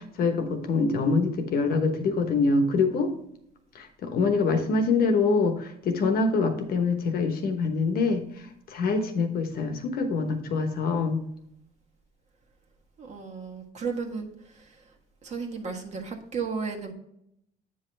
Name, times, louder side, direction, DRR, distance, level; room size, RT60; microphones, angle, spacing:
voice 1, 0.0-3.1 3.7-8.2 8.7-11.2, left 4 dB, 65° left, 7 dB, 1.1 m, -25 dB
voice 2, 13.0-14.3 15.2-16.9, right 5 dB, 45° right, 2 dB, 1.5 m, -33 dB
8.6 x 5.5 x 3.3 m, 0.74 s
cardioid pair, 110°, 17 cm